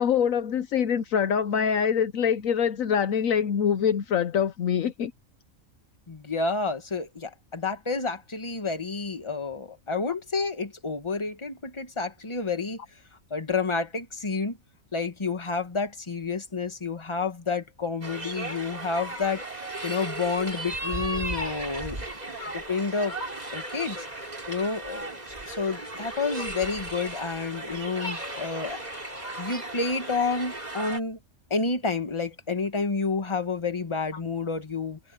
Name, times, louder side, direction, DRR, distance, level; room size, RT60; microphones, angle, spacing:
voice 1, 0.0-5.1 26.4-26.5, left 7 dB, 70° left, 1.2 m, -24 dB
voice 2, 6.1-12.8 13.3-14.6 14.9-19.4 19.8-23.2 23.5-24.0 24.5-25.1 25.5-28.8 29.4-31.2 31.5-35.0, left 4 dB, 20° left, 1.5 m, -29 dB
sound 1, 18.0-31.0, right 2 dB, 30° right, 3.0 m, -36 dB
omnidirectional pair, 1.5 m